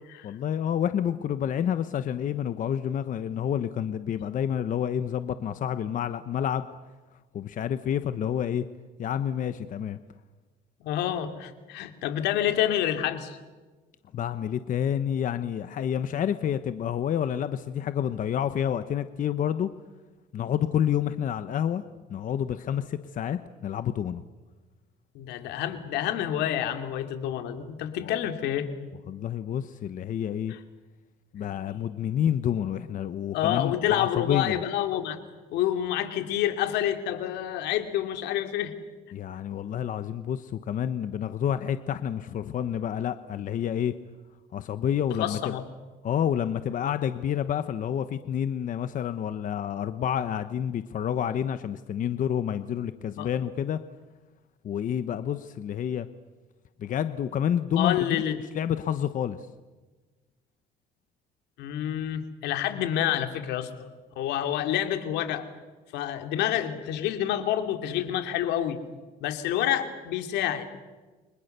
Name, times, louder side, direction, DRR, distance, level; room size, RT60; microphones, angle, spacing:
voice 1, 0.2-6.7 7.3-8.6 9.0-10.0 14.1-19.7 20.3-21.8 22.1-24.2 28.0-28.2 29.1-30.5 31.3-34.6 39.1-43.9 44.5-45.5 46.0-53.8 54.6-56.1 56.8-58.0 58.5-59.5, left 9 dB, 50° left, 11 dB, 1.1 m, -29 dB
voice 2, 10.8-13.4 25.1-28.7 30.5-30.6 33.3-35.2 35.5-38.7 45.2-45.6 53.2-53.3 57.8-58.4 61.6-63.7 64.2-65.5 65.9-68.8 69.2-70.7, left 11 dB, 90° left, 7 dB, 2.9 m, -28 dB
30.0 x 25.0 x 6.8 m, 1.3 s
cardioid pair, 110°, 17 cm